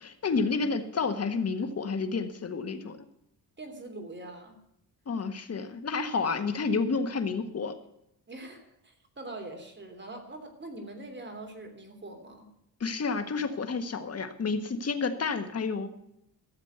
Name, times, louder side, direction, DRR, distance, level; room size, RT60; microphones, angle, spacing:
voice 1, 0.0-3.0 5.1-7.7 12.8-15.9, left 4 dB, 40° left, 8 dB, 1.6 m, -30 dB
voice 2, 3.6-4.6 8.3-12.5, right 2 dB, 30° right, 5 dB, 3.2 m, -43 dB
13.5 x 7.5 x 8.1 m, 0.78 s
cardioid pair, 95°, 37 cm